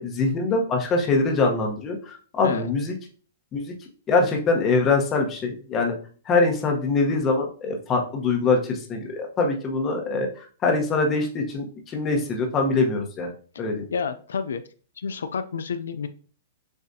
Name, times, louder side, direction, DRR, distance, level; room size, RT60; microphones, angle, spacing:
voice 1, 0.0-2.9 3.5-3.7 4.1-5.9 6.3-10.3 10.6-13.3 13.6-13.8, left 3 dB, 25° left, 2 dB, 1.0 m, -23 dB
voice 2, 13.9-14.6 15.0-16.1, left 6 dB, 90° left, 11 dB, 0.3 m, -29 dB
7.0 x 2.4 x 2.7 m, 0.42 s
hypercardioid pair, 145°, 0 cm